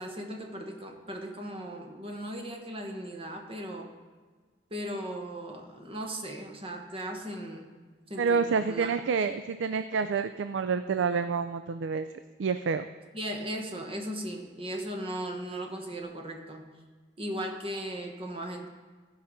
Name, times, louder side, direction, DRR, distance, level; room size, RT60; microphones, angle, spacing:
voice 1, 0.0-3.9 4.7-7.7 8.1-8.9 13.1-16.7 17.2-18.7, right 1 dB, 30° right, 3 dB, 1.3 m, -37 dB
voice 2, 8.2-12.1 12.4-12.9, right 5 dB, 75° right, 10 dB, 0.4 m, -28 dB
15.0 x 5.7 x 5.2 m, 1.4 s
head